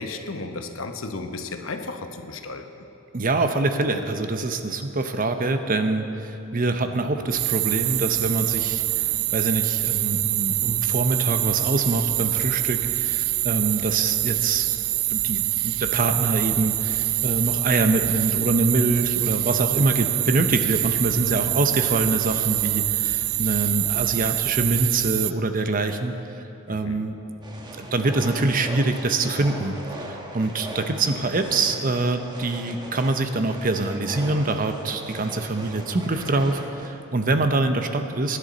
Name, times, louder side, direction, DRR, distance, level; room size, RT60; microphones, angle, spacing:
voice 1, 0.0-2.7 26.7-27.1, left 3 dB, 70° left, 6 dB, 0.9 m, -34 dB
voice 2, 3.1-14.8 15.1-26.1 26.7-27.2 27.8-38.4, right 2 dB, 40° right, 7 dB, 0.8 m, -25 dB
sound 1, 7.3-25.3, right 18 dB, 80° right, 0.3 m, -25 dB
sound 2, 27.4-36.9, right 1 dB, 20° right, 1.2 m, -38 dB
23.0 x 11.0 x 4.0 m, 2.9 s
head